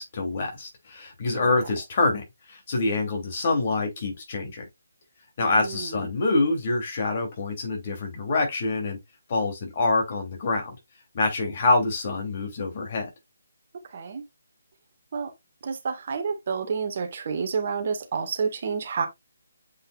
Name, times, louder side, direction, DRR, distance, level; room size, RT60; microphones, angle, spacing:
voice 1, 0.0-4.6 5.4-9.0 9.3-10.8 11.1-13.1, left 3 dB, 40° left, 3.1 m, -26 dB
voice 2, 5.4-6.0 13.9-14.2 15.1-15.3 15.6-19.1, right 5 dB, 45° right, 1.8 m, -29 dB
8.3 x 5.2 x 2.5 m
figure-of-eight pair, 150°, 0 cm